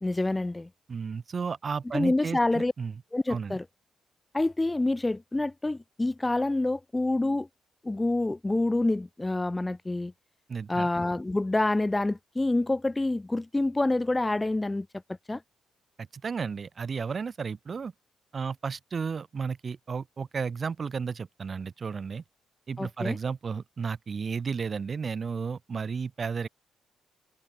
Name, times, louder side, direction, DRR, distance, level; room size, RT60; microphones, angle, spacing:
voice 1, 0.0-0.7 1.9-2.7 3.1-3.6 4.3-7.5 7.8-10.1 10.7-14.9 15.3-15.4 22.8-23.2, left 2 dB, 15° left, 0.5 m, -27 dB
voice 2, 0.9-2.9 3.3-3.6 10.5-10.9 16.1-17.9 18.3-22.2 22.7-26.5, right 5 dB, 40° right, 0.6 m, -33 dB
cardioid pair, 90°, 0 cm